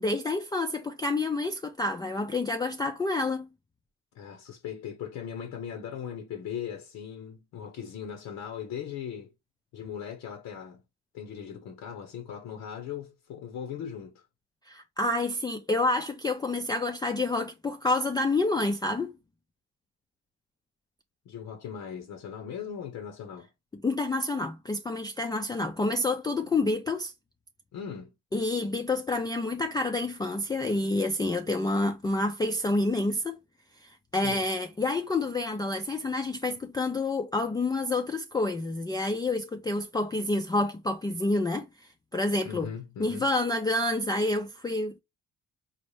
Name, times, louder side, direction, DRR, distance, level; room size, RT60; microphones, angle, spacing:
voice 1, 0.0-3.5 14.7-19.1 23.8-27.1 28.3-33.4 33.8-41.7 42.1-42.7 43.0-45.0, left 2 dB, 15° left, 0.3 m, -28 dB
voice 2, 4.1-9.3 9.7-10.8 11.1-14.3 21.3-23.5 27.7-28.1 34.1-34.5 42.4-43.3, left 8 dB, 85° left, 0.7 m, -39 dB
4.1 x 2.1 x 3.1 m
cardioid pair, 90°, 30 cm